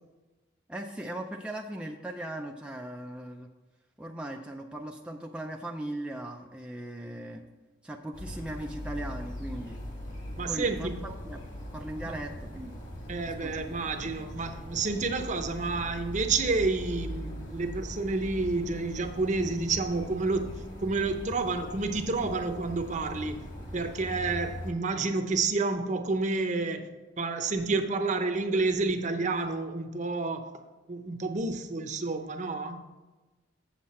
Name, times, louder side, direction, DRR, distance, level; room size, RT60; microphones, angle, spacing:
voice 1, 0.7-3.5 4.0-7.4 7.8-9.8 10.5-11.4 11.7-12.8 13.4-13.8, right 1 dB, 5° right, 1 dB, 0.4 m, -38 dB
sound 1, 8.1-24.7, equal, 40° left, 1.9 m, -40 dB
voice 2, 10.4-11.0 12.1-12.2 13.1-23.4 23.7-26.9 27.2-30.5 30.9-32.9, right 3 dB, 40° right, 7 dB, 0.7 m, -29 dB
7.6 x 7.4 x 4.2 m, 1.2 s
head